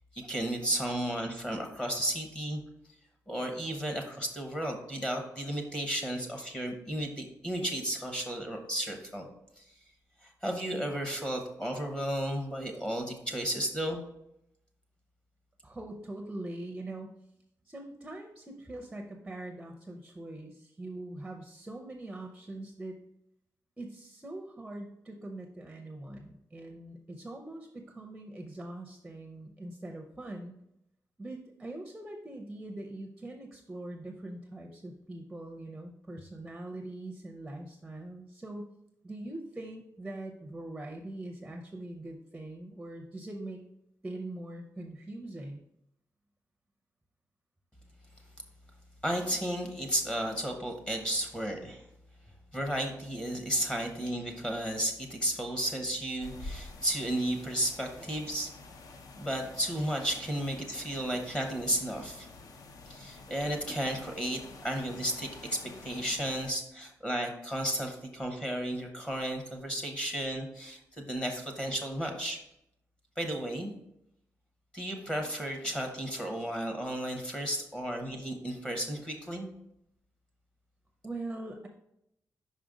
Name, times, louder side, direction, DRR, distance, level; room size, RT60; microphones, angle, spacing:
voice 1, 0.1-2.6 3.3-9.3 9.6-9.7 10.2-14.0 49.0-51.9 52.5-58.5 59.2-62.3 62.9-72.4 73.2-73.7 74.7-79.5, right 1 dB, 15° left, 3 dB, 0.8 m, -33 dB
voice 2, 15.6-17.1 17.6-23.0 23.8-30.5 31.2-38.7 39.0-43.6 44.0-45.6 66.3-66.4 81.0-81.7, right 2 dB, 10° right, 3 dB, 0.5 m, -42 dB
sound 1, 56.2-66.5, left 3 dB, 70° left, 0.6 m, -48 dB
5.4 x 5.0 x 3.7 m, 0.80 s
wide cardioid pair, 150°, 6 cm